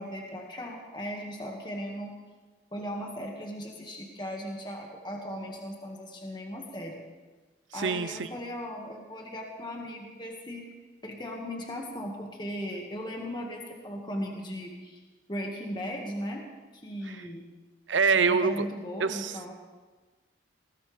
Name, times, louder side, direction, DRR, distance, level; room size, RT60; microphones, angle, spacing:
voice 1, 0.0-2.1 2.7-7.0 7.7-10.7 11.0-15.0 15.3-16.4 16.7-17.4 18.3-19.5, equal, 25° left, 0 dB, 1.8 m, -37 dB
voice 2, 7.7-8.3 17.1-17.2 17.9-18.7 19.0-19.3, right 5 dB, 75° right, 12 dB, 0.8 m, -25 dB
20.0 x 19.0 x 3.4 m, 1.3 s
head